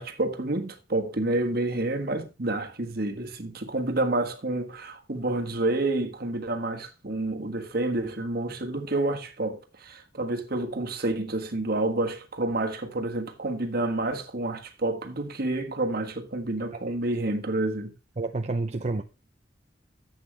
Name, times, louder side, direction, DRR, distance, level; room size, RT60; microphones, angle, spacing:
voice 1, 0.0-17.9, right 2 dB, 55° right, 1.5 m, -29 dB
voice 2, 18.2-19.0, right 3 dB, 40° right, 0.6 m, -29 dB
11.5 x 8.0 x 3.3 m
head